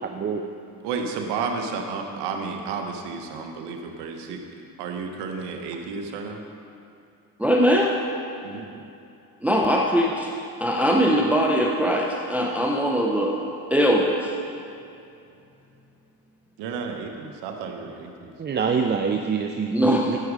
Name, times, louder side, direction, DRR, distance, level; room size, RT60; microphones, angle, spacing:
voice 1, 0.0-0.4 18.4-20.2, right 6 dB, 25° right, 3 dB, 0.6 m, -25 dB
voice 2, 0.8-6.4 8.4-8.8 16.6-18.3, right 5 dB, 85° right, 3 dB, 1.3 m, -32 dB
voice 3, 7.4-7.9 9.4-10.3 10.6-13.4 13.7-14.3 19.7-20.1, equal, 5° right, -1 dB, 0.9 m, -21 dB
15.0 x 6.3 x 4.9 m, 2.6 s
cardioid pair, 100°, 40 cm